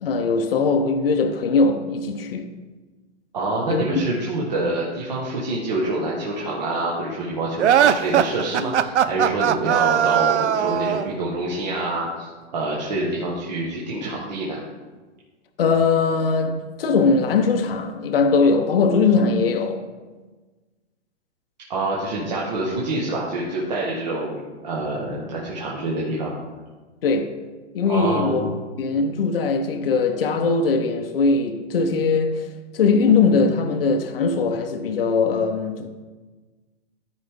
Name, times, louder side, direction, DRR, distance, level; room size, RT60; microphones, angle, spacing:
voice 1, 0.0-2.5 3.7-4.0 15.6-19.8 27.0-27.4 27.7-28.5 28.8-32.5 32.7-35.9, left 4 dB, 55° left, 0.8 m, -20 dB
voice 2, 3.3-14.6 21.7-26.3 27.9-28.5, right 2 dB, 40° right, 1.3 m, -26 dB
sound 1, 7.6-11.1, right 9 dB, 80° right, 0.6 m, -19 dB
13.5 x 4.9 x 3.6 m
hypercardioid pair, 180°, 35 cm